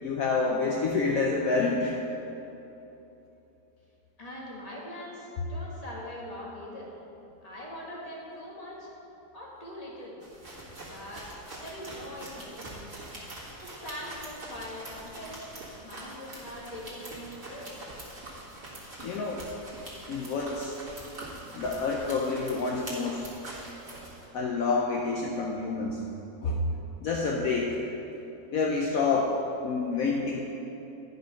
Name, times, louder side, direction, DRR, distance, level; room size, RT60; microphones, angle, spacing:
voice 1, 0.0-2.0 19.0-19.4 20.1-20.7 21.5-23.3 24.3-26.0 26.4-26.6 27.0-27.8 28.5-29.3 29.6-30.4, left 4 dB, 65° left, -1 dB, 1.1 m, -28 dB
voice 2, 4.2-6.9 7.4-8.9 9.3-10.2 10.8-11.3 11.6-12.8 13.6-15.5 15.8-17.8, left 1 dB, 25° left, -4 dB, 1.6 m, -42 dB
sound 1, 10.2-24.3, right 1 dB, 45° right, 2.0 m, -44 dB
10.5 x 5.3 x 5.6 m, 3.0 s
omnidirectional pair, 1.7 m